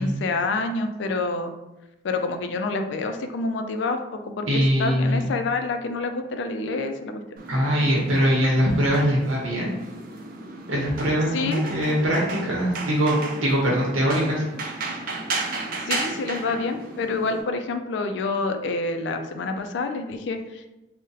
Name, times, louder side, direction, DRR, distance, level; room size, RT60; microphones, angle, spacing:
voice 1, 0.0-1.5 2.0-7.2 11.3-11.7 15.9-20.7, left 3 dB, 65° left, 7 dB, 0.3 m, -27 dB
voice 2, 4.5-5.2 7.5-9.7 10.7-13.1 13.4-15.0, equal, 90° right, -4 dB, 0.8 m, -22 dB
sound 1, 7.4-17.4, right 3 dB, 45° right, 0.4 m, -34 dB
2.6 x 2.1 x 3.8 m, 0.96 s
head